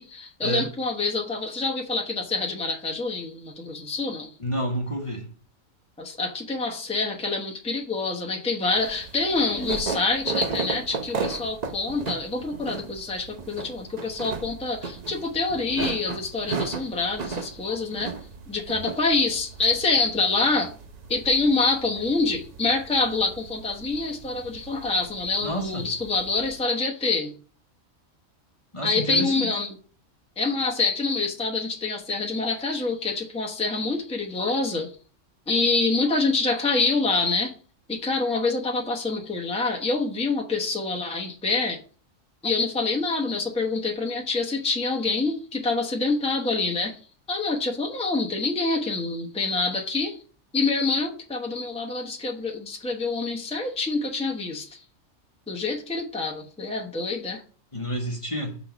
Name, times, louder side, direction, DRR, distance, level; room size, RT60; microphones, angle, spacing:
voice 1, 0.0-4.3 6.0-18.1 18.5-20.7 21.1-27.3 28.8-29.8 30.4-34.9 35.5-37.5 37.9-41.8 42.4-47.0 47.3-50.2 50.5-54.8 55.5-57.4, left 3 dB, 5° left, 0.8 m, -26 dB
voice 2, 4.4-5.3 25.4-25.9 28.7-29.5 57.7-58.6, equal, 25° left, 1.1 m, -29 dB
sound 1, 8.7-26.6, right 5 dB, 40° right, 0.7 m, -36 dB
5.7 x 4.0 x 5.8 m
omnidirectional pair, 1.3 m